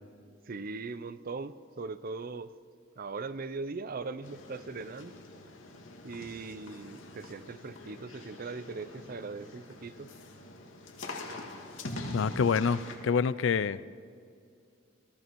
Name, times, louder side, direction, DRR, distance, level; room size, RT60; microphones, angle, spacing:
voice 1, 0.3-2.5 3.0-5.2 6.0-10.1, right 4 dB, 50° right, 14 dB, 0.6 m, -40 dB
sound 1, 4.2-13.0, left 2 dB, 90° left, 2.0 m, -44 dB
voice 2, 12.1-13.9, left 6 dB, 70° left, 18 dB, 0.4 m, -27 dB
20.5 x 14.0 x 4.6 m, 2.3 s
head